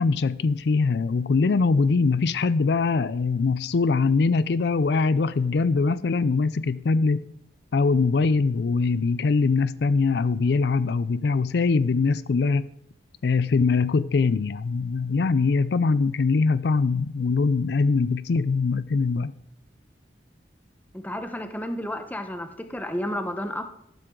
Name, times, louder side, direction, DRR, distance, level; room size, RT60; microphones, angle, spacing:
voice 1, 0.0-7.3 7.7-12.7 13.2-19.3, left 4 dB, 65° left, 0.4 m, -22 dB
voice 2, 20.9-23.6, left 1 dB, 10° left, 1.0 m, -31 dB
14.0 x 12.5 x 3.8 m
head